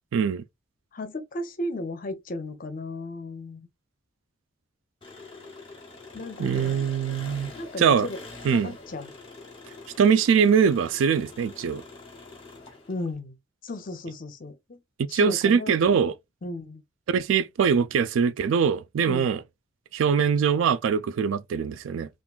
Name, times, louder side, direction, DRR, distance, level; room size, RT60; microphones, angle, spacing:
voice 1, 0.1-0.4 6.4-7.5 7.8-8.1 8.4-8.7 10.0-11.8 15.0-16.1 17.1-19.4 19.9-22.1, right 6 dB, 80° right, 0.3 m, -22 dB
voice 2, 0.9-3.7 6.1-6.9 7.6-8.2 8.5-9.1 12.9-13.4 13.6-14.8 15.1-15.7 16.4-16.8 19.0-19.3, left 2 dB, 45° left, 0.6 m, -35 dB
Engine, 5.0-13.1, left 3 dB, 25° left, 1.0 m, -45 dB
3.6 x 2.5 x 2.4 m
head